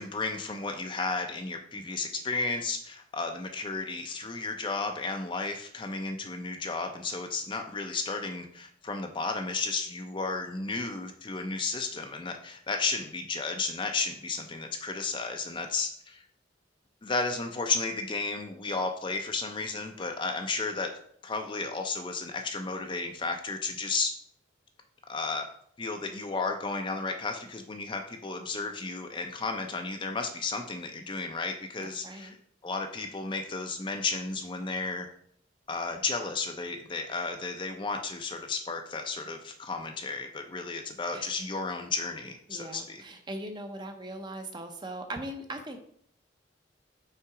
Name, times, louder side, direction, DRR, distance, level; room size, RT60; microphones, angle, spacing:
voice 1, 0.0-16.2 17.0-20.9 21.2-24.1 25.1-25.5 25.8-32.4 32.6-35.1 35.7-43.0, left 3 dB, 25° left, 5 dB, 0.5 m, -33 dB
voice 2, 31.8-32.3 41.1-41.3 42.5-45.8, right 1 dB, 25° right, 5 dB, 0.6 m, -40 dB
5.7 x 3.6 x 4.8 m, 0.64 s
head